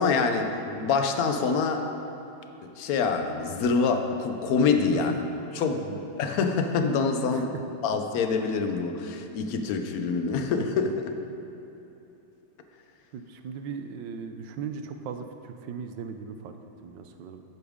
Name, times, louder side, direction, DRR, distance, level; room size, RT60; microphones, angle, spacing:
voice 1, 0.0-1.8 2.8-5.1 5.6-5.8 6.2-7.5 7.8-11.1, left 5 dB, 60° left, 6 dB, 1.0 m, -25 dB
voice 2, 13.1-16.6 16.8-17.4, right 6 dB, 75° right, 7 dB, 1.3 m, -38 dB
12.5 x 8.4 x 3.6 m, 3.0 s
omnidirectional pair, 2.1 m